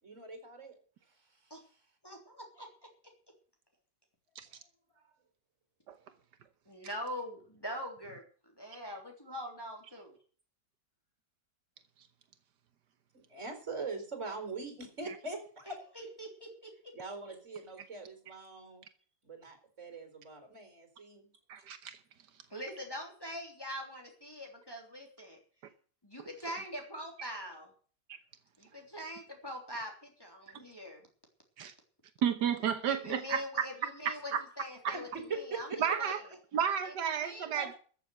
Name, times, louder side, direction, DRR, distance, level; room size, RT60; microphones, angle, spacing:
voice 1, 0.0-0.7 1.1-1.5 4.6-5.1 13.1-15.7 16.9-18.8 19.2-21.6 34.9-35.0 35.3-35.8, right 3 dB, 45° right, 4.7 m, -43 dB
voice 2, 2.0-2.7 6.6-8.2 8.6-10.2 15.7-16.7 22.5-25.4 26.0-27.7 28.6-31.0 32.8-36.2 36.8-37.7, equal, 15° left, 3.4 m, -43 dB
voice 3, 21.5-22.0 31.6-31.7 32.2-33.7 34.0-34.4 34.8-34.9 35.8-36.2 36.5-37.7, right 8 dB, 85° right, 1.7 m, -32 dB
14.0 x 7.2 x 9.3 m
omnidirectional pair, 1.8 m